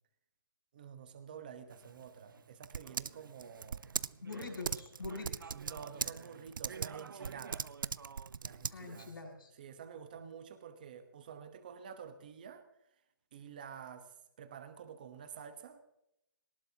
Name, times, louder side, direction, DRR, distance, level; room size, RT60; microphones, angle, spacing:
voice 1, 0.7-3.9 5.2-7.7 8.4-9.1 9.6-12.6 13.3-15.8, right 7 dB, 25° right, 8 dB, 1.2 m, -49 dB
Typing, 1.7-9.2, right 6 dB, 65° right, 0.5 m, -41 dB
voice 2, 4.2-5.5 8.7-9.5, left 3 dB, 75° left, -1 dB, 7.1 m, -44 dB
22.0 x 19.5 x 3.0 m, 0.85 s
hypercardioid pair, 180°, 12 cm